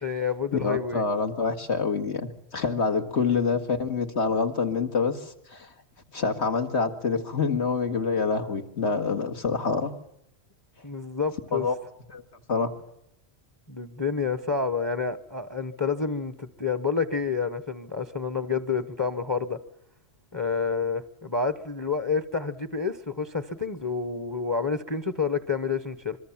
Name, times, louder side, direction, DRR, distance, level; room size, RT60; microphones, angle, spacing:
voice 1, 0.0-1.0 3.3-3.4 10.8-11.7 13.7-19.6 20.3-26.2, left 5 dB, 20° left, 12 dB, 0.9 m, -29 dB
voice 2, 0.6-5.7 6.1-9.9 11.5-11.7 12.1-12.2 12.5-12.7, left 4 dB, 75° left, 6 dB, 2.2 m, -26 dB
25.0 x 23.0 x 7.3 m, 0.79 s
omnidirectional pair, 1.1 m